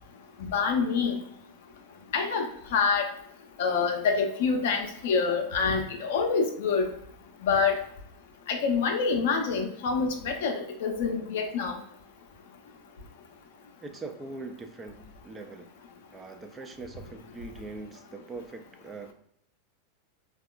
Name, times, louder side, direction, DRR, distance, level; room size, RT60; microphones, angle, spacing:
voice 1, 0.5-1.2 2.1-3.1 3.6-6.8 7.4-7.8 8.5-11.8, left 5 dB, 65° left, 4 dB, 0.5 m, -26 dB
voice 2, 13.8-15.7 16.1-19.1, right 3 dB, 20° right, 6 dB, 0.4 m, -42 dB
3.4 x 2.3 x 2.4 m, 0.71 s
hypercardioid pair, 95°, 0 cm